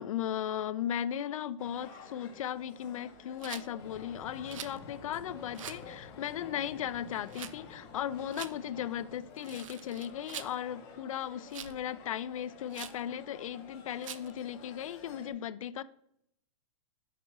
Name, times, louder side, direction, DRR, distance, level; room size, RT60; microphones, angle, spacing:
voice 1, 0.0-15.8, left 10 dB, 85° left, 0.4 m, -37 dB
sound 1, 1.6-15.3, left 5 dB, 20° left, 0.7 m, -52 dB
Rattle, 3.4-3.7 4.5-4.8 5.5-5.8 7.3-7.5 8.3-8.5 9.4-10.5 11.5-11.8 12.7-13.0 14.0-14.3, right 9 dB, 75° right, 0.5 m, -44 dB
sound 2, 3.8-10.3, left 5 dB, 50° left, 0.9 m, -52 dB
6.0 x 4.1 x 4.7 m
supercardioid pair, 175°, 17 cm